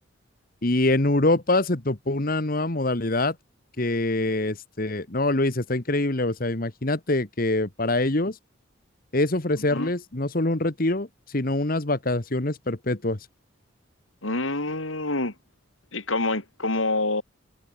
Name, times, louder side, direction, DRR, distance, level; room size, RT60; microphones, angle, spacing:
voice 1, 0.6-3.4 3.8-8.4 9.1-11.1 11.3-13.2, left 2 dB, 45° left, 1.6 m, -24 dB
voice 2, 9.6-9.9 14.2-15.3 15.9-17.2, left 2 dB, 85° left, 4.2 m, -27 dB
head